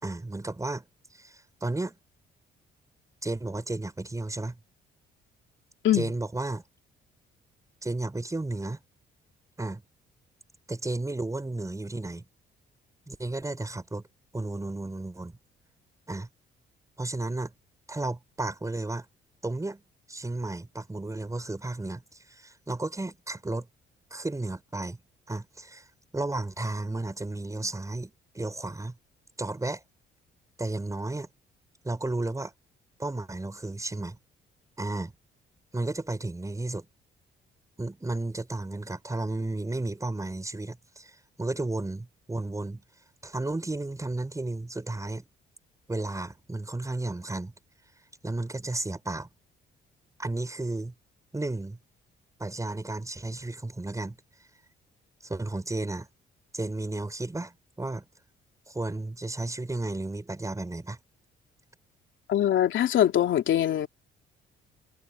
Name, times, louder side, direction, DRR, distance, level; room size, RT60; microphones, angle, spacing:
voice 1, 0.0-0.9 1.1-2.0 3.2-4.6 5.9-6.6 7.8-8.8 9.6-9.8 10.7-12.2 13.1-14.1 14.3-15.4 16.1-16.3 17.0-17.5 17.9-19.1 19.4-19.8 20.1-23.7 24.1-25.0 25.3-25.9 26.1-28.9 29.4-29.8 30.6-31.3 31.8-32.5 33.0-34.2 34.8-35.1 35.7-36.9 37.8-42.8 43.2-45.2 45.9-47.5 48.2-49.3 50.2-50.9 51.3-51.8 52.4-54.2 55.2-56.1 56.5-58.1 58.7-61.0, right 2 dB, 15° right, 5.3 m, -33 dB
voice 2, 62.3-63.9, left 11 dB, 75° left, 2.9 m, -23 dB
cardioid pair, 90°, 20 cm